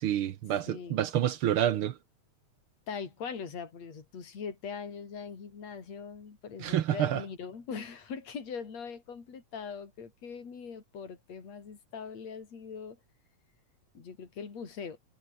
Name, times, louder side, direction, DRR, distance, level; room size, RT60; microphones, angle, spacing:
voice 1, 0.0-1.9 6.6-7.2, right 11 dB, 70° right, 1.3 m, -28 dB
voice 2, 0.7-1.0 2.9-13.0 13.9-15.0, left 6 dB, 60° left, 5.1 m, -41 dB
omnidirectional pair, 3.4 m